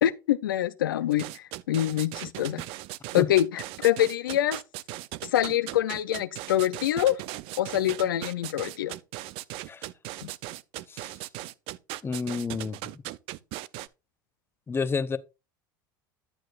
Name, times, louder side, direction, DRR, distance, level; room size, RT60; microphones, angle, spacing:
voice 1, 0.0-2.6 3.1-4.6 5.3-7.2 7.6-8.9, left 12 dB, 85° left, 0.5 m, -25 dB
sound 1, 1.1-13.9, right 17 dB, 60° right, 0.5 m, -38 dB
voice 2, 12.0-12.8 14.7-15.2, left 5 dB, 20° left, 0.8 m, -29 dB
11.5 x 7.6 x 2.4 m
hypercardioid pair, 85°, 11 cm